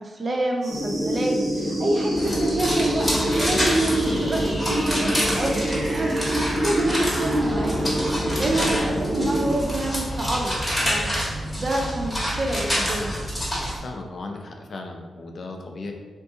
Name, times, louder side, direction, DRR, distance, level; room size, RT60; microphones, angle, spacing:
voice 1, 0.0-7.8 8.4-10.6 10.8-13.1, right 1 dB, 45° right, 0 dB, 0.5 m, -27 dB
sound 1, 0.6-11.6, right 1 dB, 85° right, 1.2 m, -38 dB
sound 2, 0.7-9.5, right 1 dB, 20° right, 0.8 m, -26 dB
sound 3, 2.2-13.8, equal, 10° left, 1.3 m, -27 dB
voice 2, 4.0-4.6 13.8-15.9, left 2 dB, 55° left, 2 dB, 0.4 m, -36 dB
2.7 x 2.6 x 3.5 m, 1.4 s
cardioid pair, 85°, 0 cm